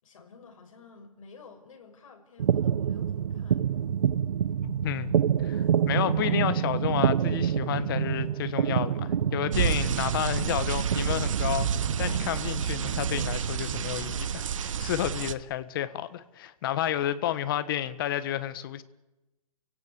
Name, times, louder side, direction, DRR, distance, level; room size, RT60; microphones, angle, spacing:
voice 1, 0.0-3.9, left 4 dB, 65° left, 6.3 m, -52 dB
sound 1, 2.4-13.3, right 9 dB, 90° right, 0.7 m, -28 dB
voice 2, 4.6-5.1 5.4-11.7 12.0-18.8, left 12 dB, 35° left, 1.3 m, -31 dB
sound 2, 9.5-15.3, right 8 dB, 60° right, 1.2 m, -29 dB
30.0 x 17.0 x 8.4 m
hypercardioid pair, 165°, 19 cm